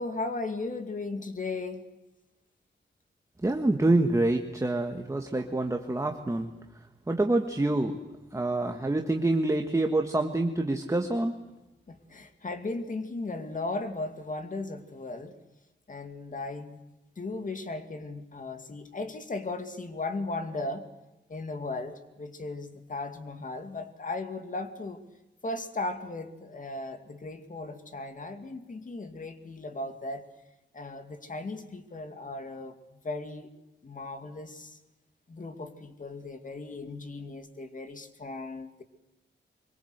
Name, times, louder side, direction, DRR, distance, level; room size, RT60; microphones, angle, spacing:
voice 1, 0.0-1.9 11.9-15.3 15.9-16.8 17.2-20.9 21.3-25.0 25.4-30.3 30.7-33.5 33.8-34.8 35.3-38.8, left 2 dB, 40° left, 7 dB, 2.4 m, -36 dB
voice 2, 3.4-6.5 7.1-8.0 8.3-11.4, right 2 dB, 15° right, 4 dB, 1.5 m, -26 dB
24.5 x 23.0 x 8.0 m, 1.0 s
wide cardioid pair, 140°, 20 cm